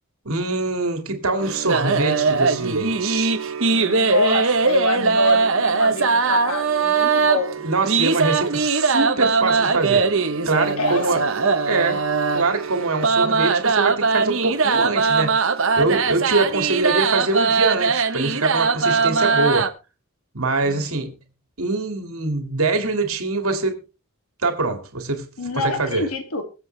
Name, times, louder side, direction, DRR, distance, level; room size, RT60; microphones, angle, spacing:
voice 1, 0.2-3.4 7.6-10.1 10.5-11.2 11.7-12.0 12.3-15.5 15.8-19.7 20.3-21.1 21.6-23.8 24.4-25.3 25.5-26.0, right 3 dB, 80° right, 2.4 m, -23 dB
sound 1, 1.4-19.7, right 4 dB, 65° right, 1.1 m, -20 dB
voice 2, 3.7-7.6 10.8-11.2 20.6-21.1 25.4-26.4, left 3 dB, 85° left, 2.5 m, -27 dB
22.5 x 7.6 x 3.4 m
head